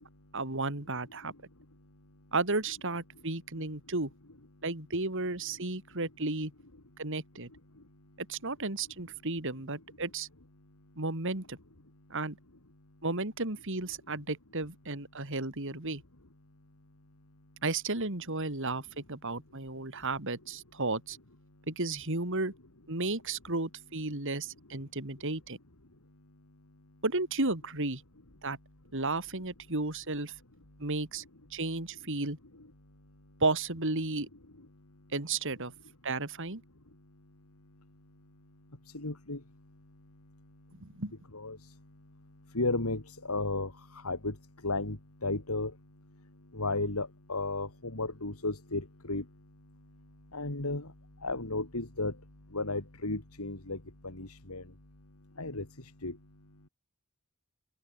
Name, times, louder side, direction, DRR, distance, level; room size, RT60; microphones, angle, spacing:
voice 1, 0.3-1.3 2.3-4.1 4.6-6.5 7.0-7.5 8.3-10.3 11.0-11.6 12.1-12.4 13.0-16.0 17.6-21.2 21.7-22.5 22.9-25.6 27.0-28.0 28.4-28.6 28.9-30.3 30.8-31.2 31.5-32.4 33.4-34.3 35.1-35.7 36.0-36.6 40.7-41.1, right 3 dB, 60° right, 3.2 m, -33 dB
voice 2, 38.9-39.4 41.3-41.6 42.5-43.0 43.3-43.7 44.0-44.3 44.6-45.7 46.5-49.2 50.3-50.8 51.2-52.1 52.5-53.8 54.0-54.6 55.4-55.6 56.0-56.1, left 2 dB, 85° left, 2.9 m, -33 dB
open air
head